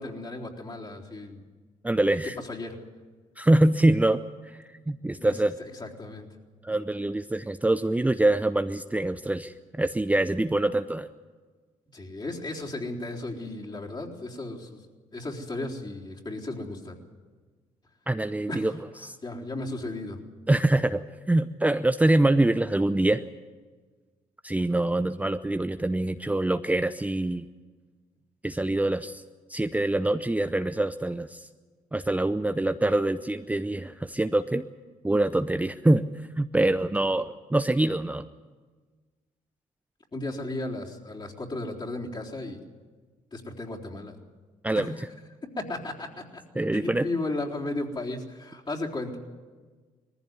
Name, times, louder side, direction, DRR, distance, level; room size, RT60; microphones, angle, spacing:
voice 1, 0.0-1.4 2.5-2.8 5.2-5.3 5.8-6.3 11.9-14.8 15.1-16.9 18.5-18.7 19.2-20.2 40.1-42.6 43.3-44.2 44.7-44.9 45.6-46.4 46.7-49.2, left 2 dB, 35° left, -2 dB, 3.9 m, -35 dB
voice 2, 1.8-2.4 3.4-5.5 6.6-11.1 18.1-19.2 20.5-23.2 24.4-27.5 28.4-29.2 29.5-31.5 31.9-34.7 35.0-36.0 36.4-38.3 44.6-45.0 46.5-47.1, right 2 dB, 10° right, 9 dB, 0.7 m, -25 dB
19.5 x 15.0 x 9.7 m, 1.4 s
supercardioid pair, 60°, 14 cm